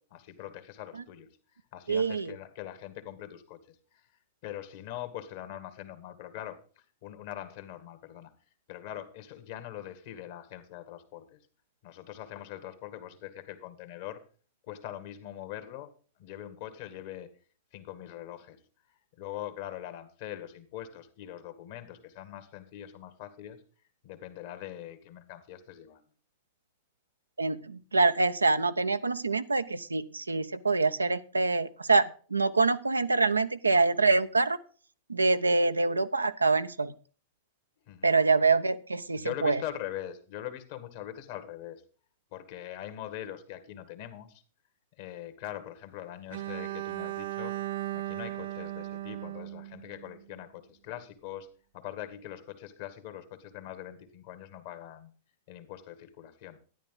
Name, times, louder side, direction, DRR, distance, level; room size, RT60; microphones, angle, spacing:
voice 1, 0.1-4.1 4.4-8.3 8.7-11.4 11.8-14.2 14.7-15.9 16.2-17.3 17.7-18.6 19.2-23.6 24.0-26.0 37.9-38.1 39.1-41.8 42.3-44.4 45.0-47.6 47.9-51.5 51.7-55.1 55.5-56.6, left 12 dB, 50° left, 10 dB, 2.1 m, -42 dB
voice 2, 1.9-2.3 27.4-34.6 35.1-36.9 38.0-39.6, right 3 dB, 80° right, 10 dB, 0.8 m, -25 dB
Bowed string instrument, 46.3-50.4, right 15 dB, 55° right, 0.5 m, -37 dB
13.0 x 10.5 x 3.9 m, 0.39 s
figure-of-eight pair, 95°, 0 cm